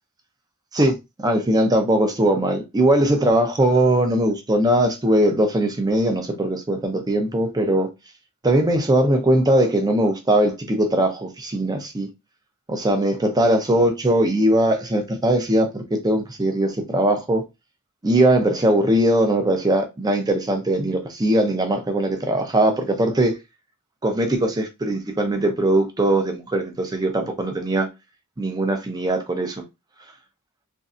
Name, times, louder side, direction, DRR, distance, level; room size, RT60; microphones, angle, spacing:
voice 1, 0.7-7.9 8.4-12.1 12.7-17.4 18.0-23.4 24.0-27.9 28.4-29.6, right 1 dB, 20° right, 0.5 m, -20 dB
3.1 x 2.6 x 2.5 m
head